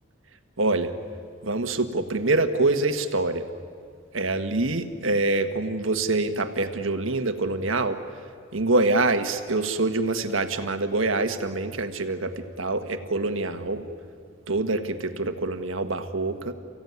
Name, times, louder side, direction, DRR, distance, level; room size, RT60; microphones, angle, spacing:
voice 1, 0.6-0.9 1.4-3.4 4.1-8.0 8.5-13.9 14.5-16.5, right 2 dB, 85° right, 8 dB, 1.5 m, -25 dB
29.5 x 16.0 x 9.5 m, 2.2 s
head